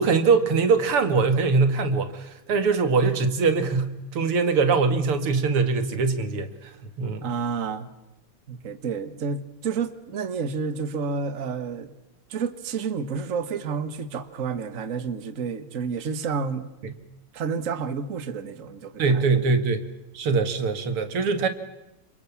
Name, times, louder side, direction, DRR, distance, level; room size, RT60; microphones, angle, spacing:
voice 1, 0.0-6.7 7.0-7.3 19.0-19.8 20.1-21.5, right 4 dB, 85° right, 2.9 m, -22 dB
voice 2, 7.2-7.9 8.5-11.9 12.3-16.7 17.3-19.3, right 5 dB, 40° right, 1.7 m, -30 dB
28.5 x 27.5 x 7.3 m
omnidirectional pair, 2.4 m